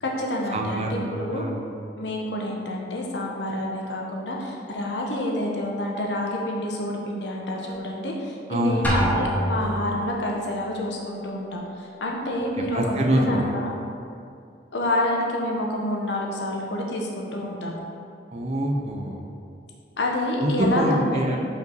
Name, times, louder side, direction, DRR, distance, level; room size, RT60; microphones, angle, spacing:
voice 1, 0.0-1.5 2.0-13.7 14.7-17.8 20.0-21.4, left 1 dB, 75° left, -1 dB, 1.0 m, -28 dB
voice 2, 0.5-1.6 8.5-9.1 12.7-13.5 18.3-19.2 20.4-21.4, right 1 dB, 40° right, 2 dB, 0.7 m, -25 dB
Drum, 8.8-10.0, equal, 10° left, 0.9 m, -24 dB
5.4 x 5.2 x 4.6 m, 2.4 s
head